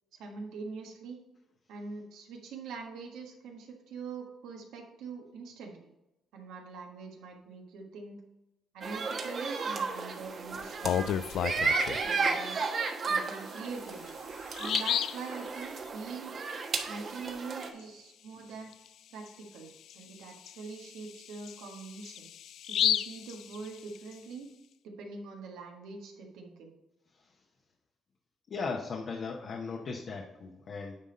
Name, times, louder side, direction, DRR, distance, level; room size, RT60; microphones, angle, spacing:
voice 1, 0.1-1.2 1.7-5.9 6.3-8.2 8.7-11.7 12.0-12.6 13.1-14.2 14.6-16.3 16.9-18.8 19.1-22.3 22.7-24.5 24.8-26.7, right 4 dB, 90° right, 1 dB, 1.5 m, -44 dB
sound 1, 8.8-17.7, right 4 dB, 50° right, 1.2 m, -33 dB
Bird vocalization bird call bird song, 10.6-12.1 13.6-13.7 14.1-14.2 14.5-15.3 18.7-18.9 19.3-19.4 19.9-24.1, left 10 dB, 75° left, 0.3 m, -32 dB
voice 2, 28.5-31.0, left 4 dB, 55° left, 1 dB, 1.0 m, -37 dB
9.6 x 3.6 x 5.2 m, 0.95 s
cardioid pair, 90°, 0 cm